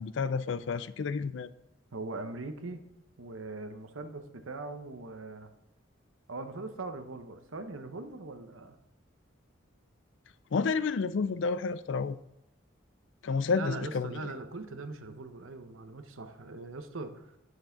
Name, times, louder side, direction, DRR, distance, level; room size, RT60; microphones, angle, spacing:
voice 1, 0.0-1.5 10.5-12.2 13.2-14.3, left 5 dB, 65° left, 0.4 m, -30 dB
voice 2, 1.9-2.8 3.2-5.5 6.3-8.8 13.5-17.3, right 3 dB, 80° right, 0.9 m, -41 dB
9.8 x 6.4 x 3.9 m
head